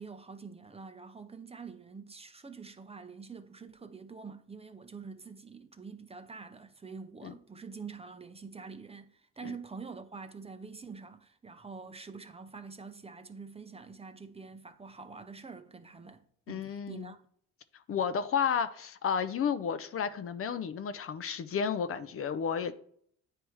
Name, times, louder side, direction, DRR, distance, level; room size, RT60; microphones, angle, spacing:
voice 1, 0.0-17.2, right 5 dB, 20° right, 0.5 m, -46 dB
voice 2, 16.5-17.1 17.9-22.7, left 7 dB, 50° left, 0.5 m, -32 dB
9.5 x 3.3 x 3.1 m
cardioid pair, 90°, 30 cm